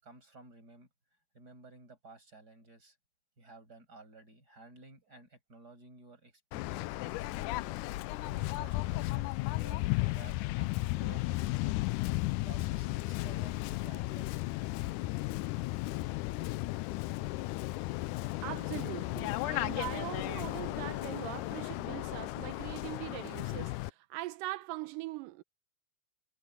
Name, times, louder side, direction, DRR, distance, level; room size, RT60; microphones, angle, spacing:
voice 1, 0.0-0.9 1.3-3.0 3.4-7.6 8.2-11.8 12.4-14.5, right 3 dB, 25° right, 7.2 m, -55 dB
Waves surf, 6.5-23.9, left 19 dB, 80° left, 2.0 m, -34 dB
voice 2, 18.4-25.4, right 17 dB, 90° right, 2.4 m, -41 dB
omnidirectional pair, 3.8 m